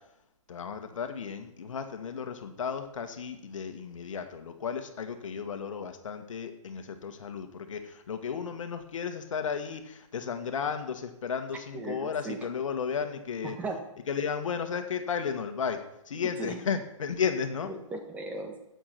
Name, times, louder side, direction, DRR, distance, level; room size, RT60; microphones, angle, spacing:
voice 1, 0.5-13.6 14.1-17.7, left 6 dB, 70° left, 7 dB, 1.9 m, -34 dB
voice 2, 11.7-12.4 13.4-13.8 16.2-16.6 17.7-18.6, right 3 dB, 10° right, 3 dB, 1.5 m, -37 dB
12.5 x 8.2 x 6.1 m, 0.83 s
hypercardioid pair, 160°, 17 cm